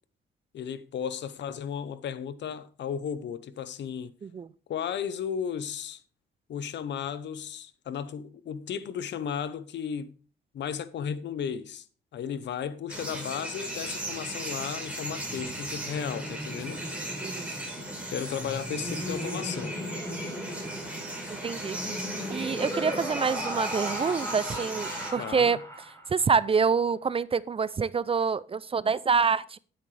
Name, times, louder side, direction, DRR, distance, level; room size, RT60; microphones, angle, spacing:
voice 1, 0.5-4.1 4.7-6.0 6.5-10.1 10.5-11.8 12.1-16.8 17.8-19.8 25.1-25.6, left 8 dB, 65° left, 0.9 m, -34 dB
sound 1, 12.9-25.1, right 1 dB, 5° right, 4.3 m, -37 dB
Laughter, 15.8-26.2, equal, 15° left, 6.1 m, -37 dB
voice 2, 17.2-17.5 21.3-21.8 22.3-25.6 26.1-29.6, right 5 dB, 30° right, 0.4 m, -26 dB
10.5 x 8.9 x 3.3 m
cardioid pair, 90°, 20 cm